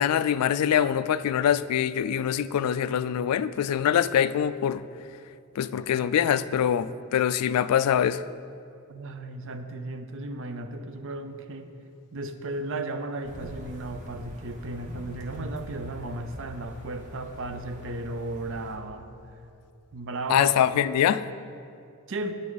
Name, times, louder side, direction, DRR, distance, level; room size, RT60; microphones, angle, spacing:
voice 1, 0.0-4.8 5.6-8.2 20.3-21.3, left 9 dB, 85° left, 16 dB, 0.3 m, -24 dB
voice 2, 8.9-11.7 12.1-19.1 19.9-20.5 22.1-22.4, right 2 dB, 60° right, 9 dB, 0.6 m, -35 dB
sound 1, 13.2-18.8, equal, 35° right, 1.2 m, -44 dB
9.6 x 9.2 x 4.0 m, 2.5 s
head